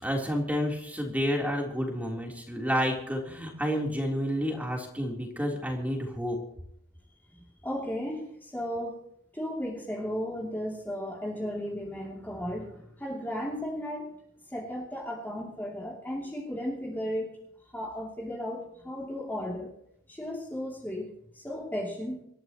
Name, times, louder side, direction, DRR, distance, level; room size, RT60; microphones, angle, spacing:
voice 1, 0.0-6.4, equal, 5° right, 0 dB, 3.6 m, -30 dB
voice 2, 7.3-9.0 9.3-14.2 14.5-17.3 17.7-19.7 20.1-22.2, equal, 10° left, -4 dB, 2.8 m, -35 dB
26.5 x 13.5 x 3.0 m, 0.74 s
head